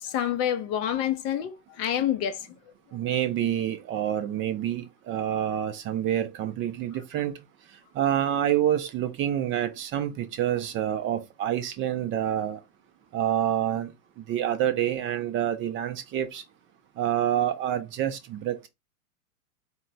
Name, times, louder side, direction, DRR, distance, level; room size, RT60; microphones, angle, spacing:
voice 1, 0.0-1.5 1.8-2.5, left 10 dB, 35° left, 0.5 m, -27 dB
voice 2, 2.9-7.4 7.9-12.6 13.1-13.9 14.2-16.4 17.0-18.7, right 11 dB, 30° right, 0.5 m, -27 dB
4.4 x 2.1 x 3.9 m
hypercardioid pair, 105°, 44 cm